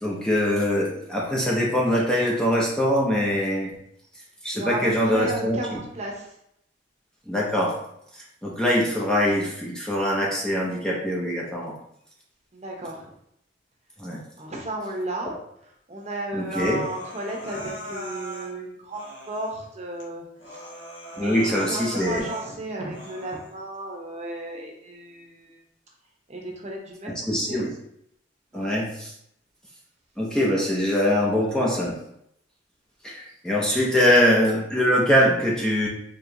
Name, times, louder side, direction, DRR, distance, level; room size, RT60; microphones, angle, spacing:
voice 1, 0.0-3.7 4.4-5.8 7.3-7.8 8.4-11.7 14.0-14.2 15.2-15.3 16.3-16.8 21.2-22.2 27.0-27.7 28.5-29.1 30.2-32.0 33.0-35.9, equal, 5° left, -4 dB, 0.5 m, -23 dB
voice 2, 4.5-6.3 12.5-13.1 14.4-15.3 15.9-20.6 21.1-25.6 26.3-27.6 28.5-28.7, right 1 dB, 35° right, 0 dB, 0.8 m, -34 dB
Human voice, 16.5-18.5 18.9-19.6 20.0-20.1 20.4-22.5 22.9-23.5, equal, 85° left, 1.1 m, -39 dB
4.6 x 3.0 x 2.6 m, 0.74 s
head